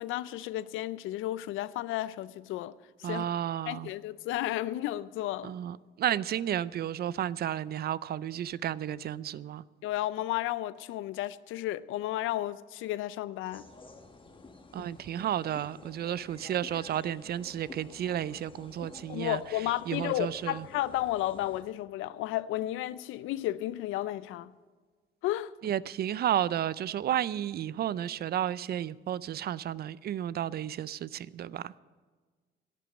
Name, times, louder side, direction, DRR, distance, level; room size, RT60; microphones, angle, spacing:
voice 1, 0.0-2.7 3.0-3.2 3.7-5.5 9.8-13.6 14.8-14.9 19.1-24.5 25.2-25.5, left 14 dB, 90° left, 0.4 m, -33 dB
voice 2, 3.0-3.9 5.4-9.6 14.7-19.4 19.9-20.6 25.6-31.7, right 11 dB, 55° right, 0.4 m, -32 dB
sound 1, 13.5-21.6, left 3 dB, 25° left, 1.2 m, -51 dB
11.5 x 9.1 x 7.0 m
cardioid pair, 90°, 20 cm